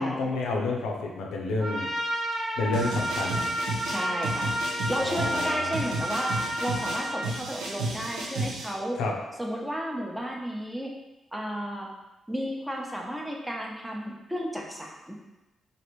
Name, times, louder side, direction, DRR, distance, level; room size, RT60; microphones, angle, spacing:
voice 1, 0.0-1.9 2.6-3.5 5.0-5.8 8.9-9.1, left 3 dB, 85° left, -1 dB, 0.5 m, -29 dB
Trumpet, 1.6-7.3, equal, 75° right, 1.3 m, -31 dB
sound 1, 2.7-8.7, right 2 dB, 90° right, 0.5 m, -33 dB
voice 2, 3.9-4.5 4.9-9.0 9.4-10.9 11.3-11.9 12.3-15.2, equal, 5° right, -1 dB, 0.7 m, -33 dB
3.1 x 2.6 x 3.0 m, 1.0 s
supercardioid pair, 55°, 0 cm